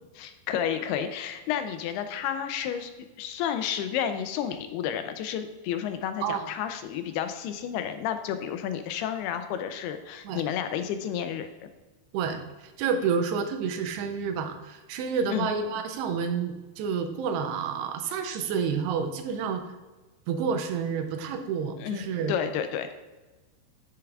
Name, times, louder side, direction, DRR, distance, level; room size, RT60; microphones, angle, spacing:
voice 1, 0.2-2.9 3.2-11.5 15.3-15.5 21.8-22.9, left 9 dB, 80° left, 8 dB, 2.5 m, -31 dB
voice 2, 12.1-19.6 20.3-22.3, right 6 dB, 85° right, 6 dB, 2.9 m, -29 dB
11.0 x 6.8 x 2.4 m, 1.2 s
omnidirectional pair, 4.7 m